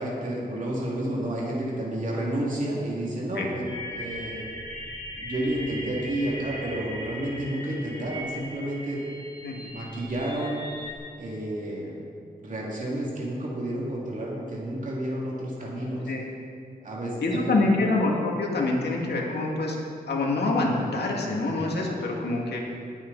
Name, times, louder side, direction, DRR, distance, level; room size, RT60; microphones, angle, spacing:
voice 1, 0.0-4.4 5.2-9.0 9.5-10.6 11.2-12.1 12.4-16.1 16.8-17.9, right 1 dB, 50° right, -5 dB, 2.7 m, -31 dB
sound 1, 3.6-10.9, left 1 dB, 30° left, 3.5 m, -39 dB
voice 2, 17.2-19.8 20.1-22.6, left 2 dB, 85° left, -2 dB, 2.4 m, -26 dB
21.0 x 8.7 x 4.2 m, 2.3 s
wide cardioid pair, 130°, 17 cm